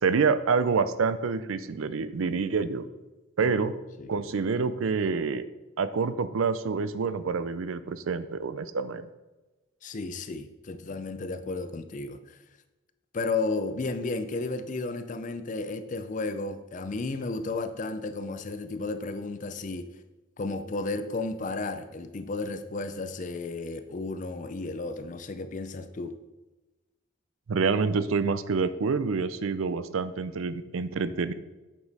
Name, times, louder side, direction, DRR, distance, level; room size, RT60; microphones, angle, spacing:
voice 1, 0.0-2.9 3.4-3.7 4.1-5.4 5.8-9.1 27.5-31.3, right 5 dB, 85° right, 13 dB, 0.5 m, -27 dB
voice 2, 9.8-12.2 13.1-19.9 20.4-26.2, left 3 dB, 40° left, 10 dB, 0.4 m, -33 dB
8.3 x 5.0 x 4.1 m, 1.1 s
head